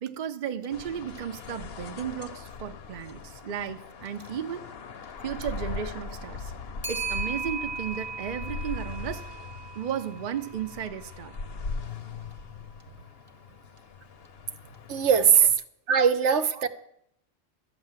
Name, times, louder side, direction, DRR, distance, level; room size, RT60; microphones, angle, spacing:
voice 1, 0.0-4.7 5.2-6.5 6.9-9.2 9.7-11.3 15.4-15.5 16.2-16.6, right 8 dB, 45° right, 8 dB, 0.7 m, -34 dB
Clock, 0.6-0.7 1.2-1.3 4.1-4.3 6.8-11.1, right 5 dB, 25° right, 1.0 m, -37 dB
sound 1, 0.7-15.5, left 4 dB, 55° left, 0.9 m, -40 dB
voice 2, 14.9-15.4 15.9-16.7, right 7 dB, 65° right, 11 dB, 1.0 m, -20 dB
12.0 x 8.6 x 7.4 m, 0.75 s
omnidirectional pair, 1.3 m